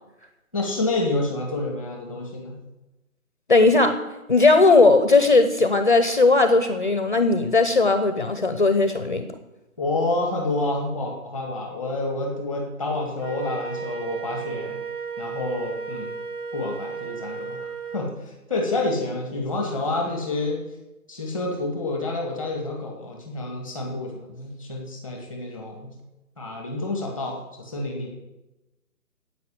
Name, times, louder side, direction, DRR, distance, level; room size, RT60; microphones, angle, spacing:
voice 1, 0.5-2.6 9.8-14.8 15.2-16.1 16.5-18.1 18.5-20.6 21.1-25.9 26.4-28.1, left 2 dB, 5° right, 1 dB, 1.5 m, -28 dB
voice 2, 3.5-4.0 4.3-9.3, left 3 dB, 35° left, 9 dB, 0.8 m, -18 dB
Wind instrument woodwind instrument, 13.2-18.1, right 5 dB, 80° right, 1.9 m, -34 dB
10.5 x 8.4 x 8.5 m, 1.0 s
figure-of-eight pair, 170°, 43 cm